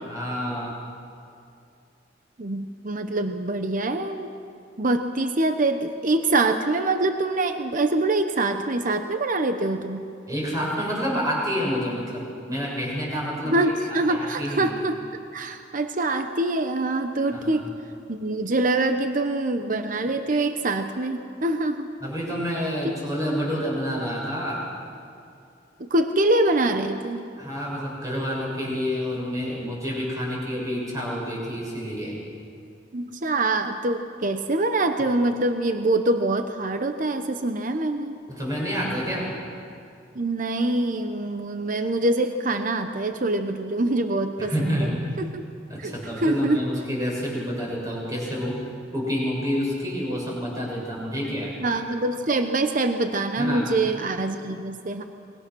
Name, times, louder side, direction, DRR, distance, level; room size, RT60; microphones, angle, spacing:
voice 1, 0.1-0.8 10.3-14.7 17.3-17.6 22.0-24.7 27.4-32.2 38.3-39.3 44.4-45.0 45.7-48.6 48.9-51.5 53.4-53.7, equal, 20° right, -3 dB, 6.8 m, -28 dB
voice 2, 2.4-4.3 4.8-10.0 13.4-15.0 15.3-17.7 18.1-21.9 25.8-27.2 32.9-38.1 40.1-44.9 45.2-45.4 45.8-46.6 51.3-51.4 51.6-55.0, right 2 dB, 45° right, 7 dB, 0.9 m, -24 dB
27.0 x 22.5 x 6.3 m, 2.5 s
head